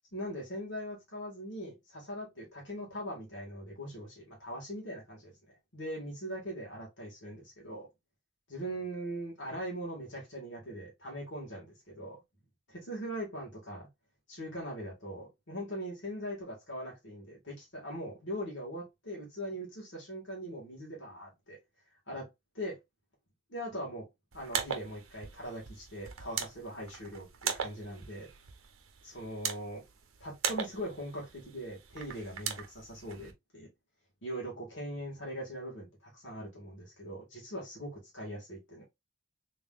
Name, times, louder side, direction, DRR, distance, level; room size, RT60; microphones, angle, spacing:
voice 1, 0.1-7.9 8.5-12.2 12.7-13.9 14.3-21.6 22.1-22.3 22.5-22.8 23.5-24.1 24.3-28.3 29.0-29.8 30.2-33.7 34.2-38.8, equal, 55° left, 2.0 m, -41 dB
sound 1, 24.3-33.3, right 7 dB, 80° right, 0.8 m, -40 dB
3.8 x 3.5 x 2.5 m
head